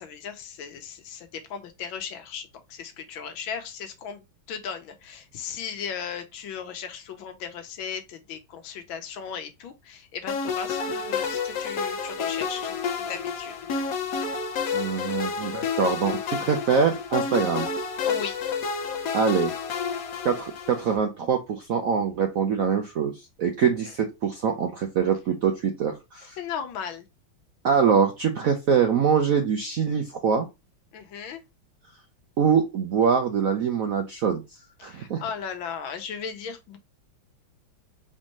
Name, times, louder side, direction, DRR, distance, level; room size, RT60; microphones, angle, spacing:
voice 1, 0.0-13.5 18.0-18.4 26.4-27.0 30.9-31.4 34.8-36.8, left 7 dB, 75° left, 1.5 m, -36 dB
sound 1, 10.3-20.9, left 6 dB, 55° left, 1.1 m, -30 dB
voice 2, 14.7-17.7 19.1-19.5 20.2-26.4 27.6-30.5 32.4-34.4 34.8-35.2, right 6 dB, 70° right, 0.8 m, -24 dB
4.4 x 3.6 x 2.9 m
omnidirectional pair, 2.2 m